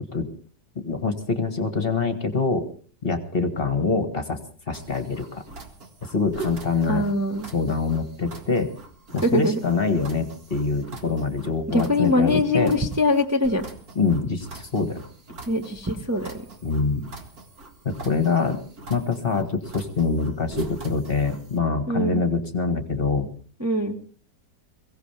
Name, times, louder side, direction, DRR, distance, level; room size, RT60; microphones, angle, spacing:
voice 1, 0.8-2.7 3.0-4.4 4.7-5.4 6.1-7.0 7.5-8.7 9.1-12.7 14.0-15.0 16.6-17.0 17.9-18.6 18.9-23.3, left 4 dB, 35° left, 8 dB, 1.7 m, -25 dB
sound 1, 4.7-21.6, right 3 dB, 55° right, 2.4 m, -42 dB
voice 2, 6.8-7.5 9.2-9.6 11.7-13.7 15.5-16.4 21.9-22.2 23.6-24.0, left 1 dB, 10° right, 2 dB, 1.1 m, -23 dB
22.5 x 16.5 x 3.4 m, 0.42 s
omnidirectional pair, 1.9 m